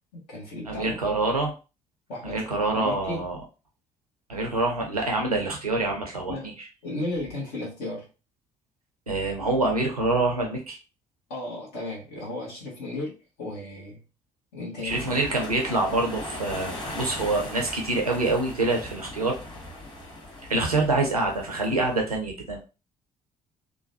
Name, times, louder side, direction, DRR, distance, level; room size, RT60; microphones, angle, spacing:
voice 1, 0.1-1.0 2.1-3.2 6.3-6.5 6.8-8.1 11.3-14.0 14.5-15.2, left 2 dB, 60° left, -4 dB, 1.2 m, -35 dB
voice 2, 0.7-1.5 2.2-3.4 4.3-6.5 9.1-10.8 14.8-19.4 20.5-22.7, right 2 dB, 85° right, 1 dB, 0.6 m, -26 dB
sound 1, 14.9-22.0, left 1 dB, 25° left, 1.4 m, -39 dB
3.0 x 2.1 x 2.7 m, 0.31 s
figure-of-eight pair, 50°, 19 cm